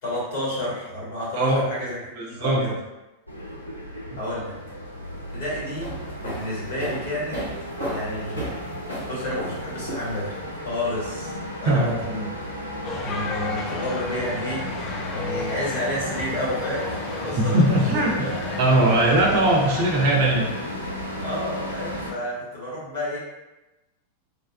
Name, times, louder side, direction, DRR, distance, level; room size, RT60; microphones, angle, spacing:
voice 1, 0.0-2.8 4.2-4.5 5.3-7.4 7.9-8.5 9.1-11.3 11.6-12.3 12.6-14.8 15.1-17.6 17.9-18.3 21.2-23.2, left 1 dB, 50° left, -7 dB, 1.5 m, -30 dB
voice 2, 1.3-1.7 2.2-2.6 11.7-12.0 17.4-18.1 18.6-20.5, right 1 dB, 50° right, -1 dB, 0.6 m, -20 dB
sound 1, 3.3-22.1, equal, 90° right, 0.5 m, -34 dB
sound 2, 5.7-10.5, equal, 80° left, 1.2 m, -34 dB
sound 3, 12.8-20.2, left 3 dB, 25° left, 0.4 m, -34 dB
3.6 x 2.3 x 2.2 m, 0.98 s
figure-of-eight pair, 90°, 0 cm